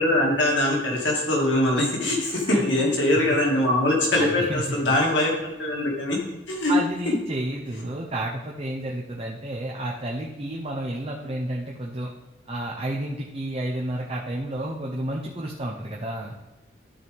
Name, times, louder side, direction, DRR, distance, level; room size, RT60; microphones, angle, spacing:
voice 1, 0.0-6.2 6.5-6.8, left 1 dB, 65° left, -2 dB, 2.1 m, -22 dB
voice 2, 4.2-4.8 6.7-12.1 12.5-16.3, right 1 dB, 30° right, -1 dB, 0.7 m, -31 dB
12.5 x 4.7 x 3.5 m, 1.1 s
head